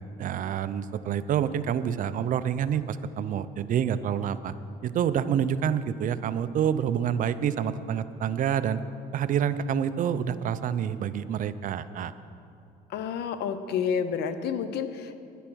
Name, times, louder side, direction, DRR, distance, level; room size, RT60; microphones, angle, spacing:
voice 1, 0.2-4.5 4.8-8.8 9.1-12.1, right 8 dB, 50° right, 13 dB, 0.5 m, -27 dB
voice 2, 12.9-15.2, left 7 dB, 75° left, 11 dB, 0.8 m, -29 dB
10.0 x 10.0 x 6.2 m, 2.6 s
cardioid pair, 110°, 17 cm